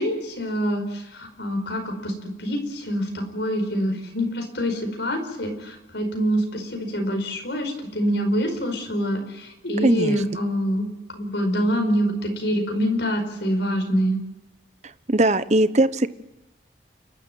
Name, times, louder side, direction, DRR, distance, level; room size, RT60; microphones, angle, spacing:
voice 1, 0.0-14.2, equal, 75° left, 5 dB, 4.9 m, -25 dB
voice 2, 9.8-10.2 15.1-16.1, right 2 dB, 40° right, 13 dB, 0.9 m, -19 dB
29.0 x 12.5 x 9.2 m, 1.0 s
head